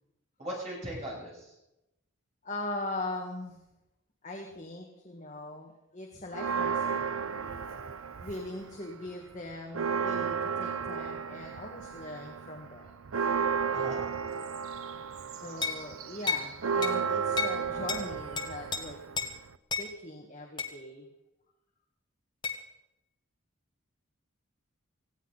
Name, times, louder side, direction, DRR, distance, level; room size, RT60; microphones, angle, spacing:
voice 1, 0.4-1.5 13.7-14.0, right 1 dB, 35° right, -4 dB, 7.6 m, -38 dB
voice 2, 2.4-3.6 4.2-7.2 8.2-12.9 15.4-19.0 19.8-21.1, left 2 dB, 35° left, 0 dB, 1.7 m, -40 dB
Church bell, 6.3-8.7 9.1-9.2 9.5-19.6, right 6 dB, 85° right, 0.6 m, -33 dB
sound 1, 15.6-15.8 16.3-16.5 16.8-17.0 17.4-17.6 17.9-18.0 18.4-18.8 19.2-19.3 19.7-19.9 20.6-20.8 22.4-22.6, left 5 dB, 20° left, 1.4 m, -31 dB
19.0 x 16.0 x 4.1 m, 0.90 s
head